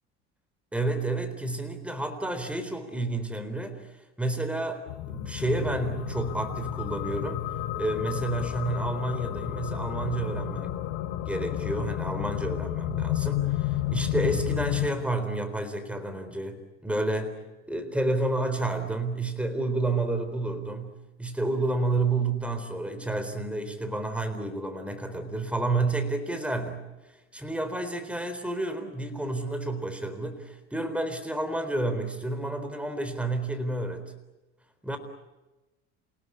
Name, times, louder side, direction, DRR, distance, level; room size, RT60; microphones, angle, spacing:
voice 1, 0.7-3.9 4.2-7.4 7.8-10.7 11.2-17.3 17.7-20.9 21.2-26.8 27.3-34.1 34.8-35.0, right 2 dB, 5° right, 8 dB, 3.9 m, -30 dB
sound 1, 4.9-14.9, left 13 dB, 70° left, 2.2 m, -31 dB
29.0 x 17.5 x 9.8 m, 1.1 s
supercardioid pair, 115°, 34 cm